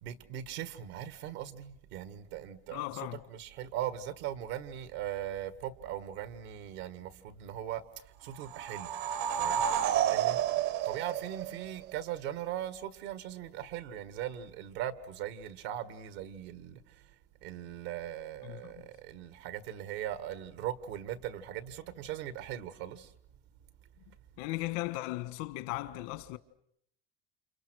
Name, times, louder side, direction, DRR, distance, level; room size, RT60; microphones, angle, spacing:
voice 1, 0.0-7.8 8.2-8.9 9.4-9.6 10.1-17.0 17.4-23.1, right 11 dB, 90° right, 1.8 m, -39 dB
voice 2, 2.7-3.2 18.4-18.9 24.4-26.4, left 18 dB, 85° left, 1.5 m, -37 dB
sound 1, 8.3-11.9, right 10 dB, 70° right, 1.2 m, -30 dB
30.0 x 28.0 x 6.4 m
cardioid pair, 130°, 30 cm